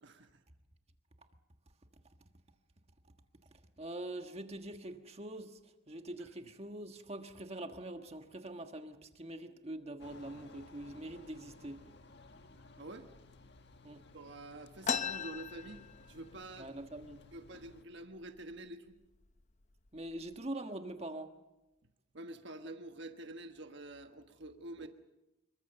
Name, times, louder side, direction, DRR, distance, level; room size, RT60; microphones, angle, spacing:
voice 1, 0.0-0.4 6.2-6.3 12.8-13.1 14.1-16.7 17.3-18.9 22.1-24.9, right 2 dB, 60° right, 6 dB, 1.4 m, -48 dB
voice 2, 3.8-11.8 13.8-14.0 16.6-17.2 19.9-21.3 24.8-24.9, right 1 dB, 30° right, 6 dB, 1.5 m, -44 dB
sound 1, 10.0-17.8, left 3 dB, 55° left, 1.7 m, -58 dB
sound 2, 14.8-16.4 16.8-16.9 17.1-17.8 18.4-18.5 19.2-19.4 19.9-20.3, left 6 dB, 35° left, 0.8 m, -37 dB
26.5 x 23.0 x 6.9 m, 1.0 s
head